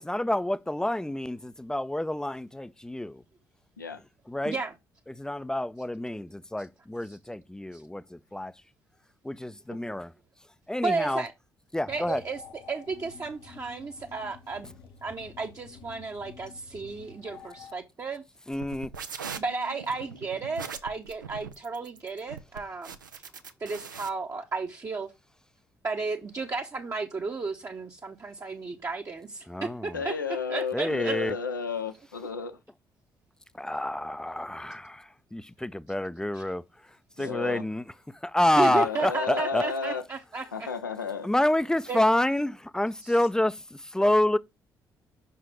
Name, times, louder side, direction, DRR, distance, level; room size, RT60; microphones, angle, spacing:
voice 1, 0.0-3.2 4.3-4.6 5.1-8.5 9.2-10.1 10.7-11.2 11.7-12.2 18.5-18.9 29.5-30.0 30.7-31.3 33.5-36.6 37.2-37.9 38.2-39.6 41.2-44.4, left 1 dB, 5° left, 0.5 m, -28 dB
voice 2, 10.8-11.3 11.9-12.4 12.7-14.7 15.0-18.2 19.4-23.0 23.6-25.1 25.8-30.1 30.5-31.2 36.3-36.4 37.2-37.3 38.6-40.7 41.9-42.0 43.0-43.1, right 4 dB, 30° right, 0.9 m, -33 dB
sound 1, 11.9-17.8, left 7 dB, 55° left, 0.9 m, -50 dB
sound 2, 18.5-24.1, right 6 dB, 85° right, 0.5 m, -40 dB
voice 3, 29.9-32.6 37.2-37.6 38.7-40.0 40.5-41.3, left 5 dB, 85° left, 0.6 m, -32 dB
5.9 x 4.6 x 4.9 m
figure-of-eight pair, 45°, 10 cm